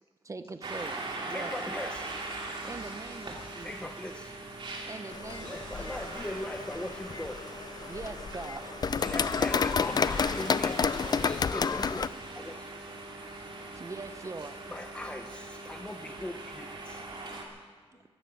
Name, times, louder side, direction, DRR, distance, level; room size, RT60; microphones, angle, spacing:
voice 1, 0.2-1.8 2.6-3.9 4.8-6.1 7.8-9.0 13.4-14.6 15.5-15.7 17.9-18.1, right 3 dB, 30° right, 10 dB, 0.7 m, -43 dB
sound 1, 0.6-17.5, right 2 dB, 50° right, 2.6 m, -41 dB
voice 2, 1.3-2.1 3.6-4.3 5.4-7.4 9.0-10.9 11.2-12.7 14.7-17.0, left 1 dB, 10° left, 6 dB, 0.7 m, -40 dB
sound 2, 5.1-12.1, left 6 dB, 40° left, 0.4 m, -30 dB
voice 3, 12.9-13.7 16.7-18.1, left 3 dB, 55° left, 2 dB, 2.2 m, -66 dB
14.5 x 12.5 x 7.5 m, 1.4 s
wide cardioid pair, 155°, 11 cm